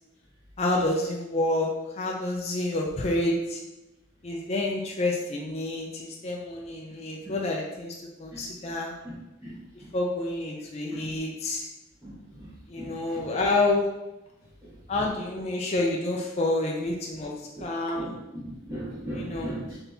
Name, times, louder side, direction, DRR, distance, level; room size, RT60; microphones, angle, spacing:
voice 1, 0.6-1.7 1.9-3.6 4.2-8.9 9.9-11.7 12.7-13.9 14.9-18.1 19.1-19.6, left 2 dB, 35° left, -1 dB, 0.4 m, -28 dB
voice 2, 12.0-12.5 12.8-12.9 18.0-18.1 18.4-19.8, equal, 15° right, -11 dB, 0.9 m, -37 dB
4.1 x 3.3 x 2.7 m, 0.98 s
head